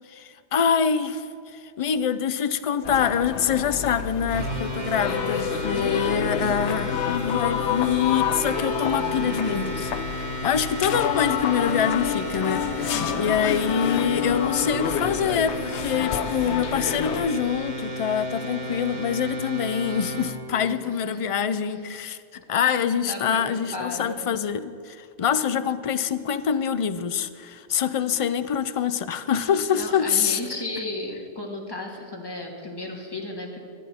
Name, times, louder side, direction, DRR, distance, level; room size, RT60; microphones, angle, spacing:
voice 1, 0.1-9.9 10.4-22.2 22.5-30.4, left 7 dB, 55° left, 12 dB, 0.3 m, -25 dB
sound 1, 2.8-17.3, left 10 dB, 90° left, 0.9 m, -29 dB
sound 2, 4.3-20.4, right 1 dB, 40° right, 1.2 m, -33 dB
voice 2, 5.7-6.8 12.8-13.4 20.7-21.2 21.7-21.8 23.1-24.4 29.8-33.6, left 2 dB, 20° left, 0 dB, 1.6 m, -35 dB
23.0 x 9.0 x 4.3 m, 2.5 s
omnidirectional pair, 1.1 m